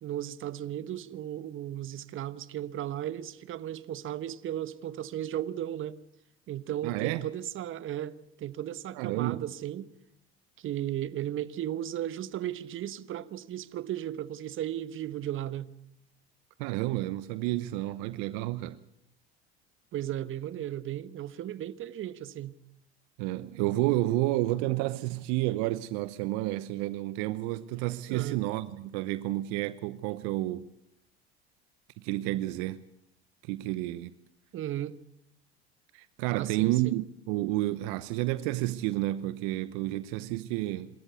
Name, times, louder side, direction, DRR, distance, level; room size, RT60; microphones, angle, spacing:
voice 1, 0.0-6.0 6.5-9.9 10.6-15.7 19.9-22.5 28.1-28.4 34.5-35.0 36.3-37.0 39.9-40.0, right 12 dB, 40° right, 1.1 m, -35 dB
voice 2, 6.8-7.3 8.9-9.5 16.6-18.8 23.2-30.7 32.0-32.8 33.4-34.1 35.9-40.9, right 17 dB, 60° right, 0.9 m, -30 dB
26.5 x 13.5 x 8.2 m
hypercardioid pair, 75°, 32 cm